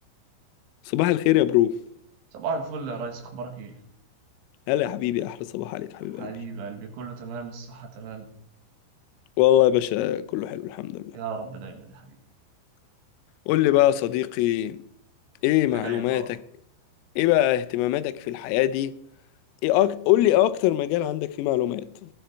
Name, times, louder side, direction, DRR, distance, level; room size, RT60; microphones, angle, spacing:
voice 1, 0.9-1.8 4.7-6.3 9.4-11.2 13.5-14.8 15.4-16.4 17.2-19.0 19.6-22.1, left 14 dB, 85° left, 3.2 m, -23 dB
voice 2, 2.3-3.8 6.1-8.3 11.1-12.2 15.7-16.3, right 4 dB, 75° right, 4.2 m, -35 dB
16.5 x 10.5 x 4.5 m
omnidirectional pair, 5.8 m